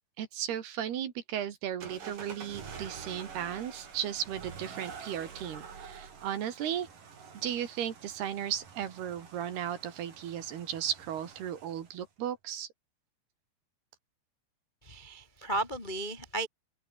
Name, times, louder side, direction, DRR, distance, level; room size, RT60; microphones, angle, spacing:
voice 1, 0.2-6.9 7.4-12.7, right 10 dB, 65° right, 4.0 m, -35 dB
sound 1, 1.8-12.0, right 6 dB, 50° right, 5.5 m, -47 dB
voice 2, 14.8-16.5, right 2 dB, 25° left, 0.9 m, -34 dB
omnidirectional pair, 5.1 m